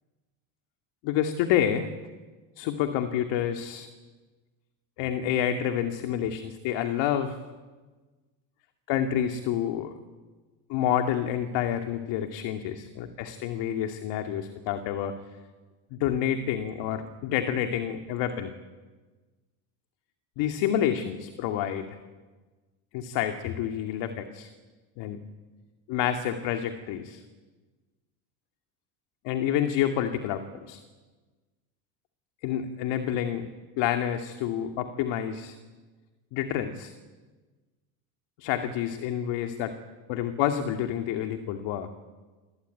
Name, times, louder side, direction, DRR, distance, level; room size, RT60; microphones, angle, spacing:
voice 1, 1.0-1.9 2.6-3.9 5.0-7.4 8.9-9.9 10.7-15.1 15.9-18.5 20.4-21.9 22.9-24.5 25.0-25.2 25.9-27.2 29.2-30.8 32.4-33.5 33.8-35.6 36.3-36.9 38.4-39.7 40.1-41.9, left 10 dB, 70° left, 5 dB, 2.5 m, -28 dB
28.5 x 21.5 x 9.3 m, 1.3 s
supercardioid pair, 100°, 46 cm